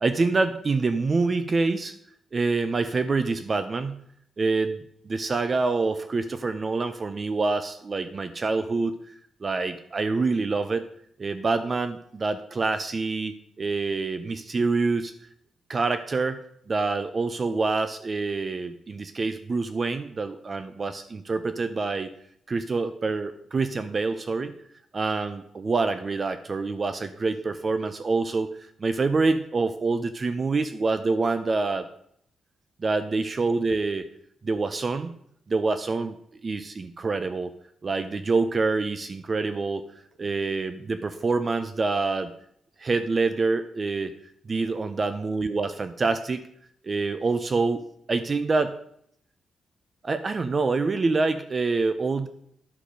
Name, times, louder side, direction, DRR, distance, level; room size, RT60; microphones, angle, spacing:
voice 1, 0.0-2.0 2.3-4.0 4.4-4.8 5.1-9.0 9.4-10.8 11.2-15.1 15.7-22.1 22.5-24.5 24.9-31.9 32.8-34.1 34.4-35.1 35.5-36.1 36.4-37.5 37.8-39.8 40.2-42.3 42.8-44.1 44.5-46.5 46.8-48.8 50.0-52.3, right 3 dB, 30° right, 11 dB, 0.4 m, -26 dB
10.0 x 6.5 x 5.2 m, 0.69 s
wide cardioid pair, 175°, 0 cm